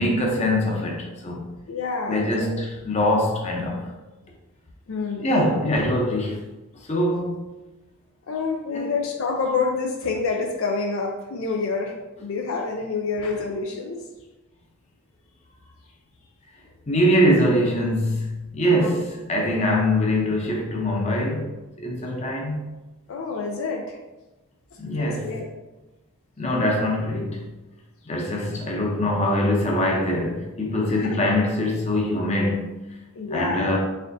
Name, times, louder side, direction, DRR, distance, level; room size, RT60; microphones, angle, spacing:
voice 1, 0.0-1.5 2.1-3.9 5.2-6.4 6.9-7.4 8.7-8.9 16.9-21.5 21.8-22.6 24.8-25.3 26.4-27.5 28.1-32.8 33.3-33.8, left 1 dB, 30° left, -1 dB, 0.7 m, -23 dB
voice 2, 1.7-2.5 4.9-5.3 8.3-14.0 18.6-19.0 23.1-24.0 24.7-25.5 30.9-31.2 33.2-33.8, left 4 dB, 65° left, 2 dB, 0.4 m, -28 dB
4.2 x 3.7 x 2.6 m, 1.1 s
head